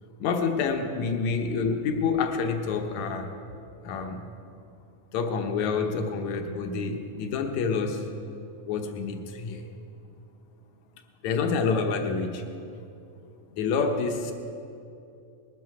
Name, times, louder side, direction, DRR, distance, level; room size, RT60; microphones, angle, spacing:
voice 1, 0.2-3.3 3.8-4.2 5.1-8.1 8.7-9.7 11.2-12.4 13.5-14.3, left 5 dB, 70° left, 5 dB, 1.8 m, -27 dB
20.5 x 12.5 x 4.9 m, 2.7 s
omnidirectional pair, 4.2 m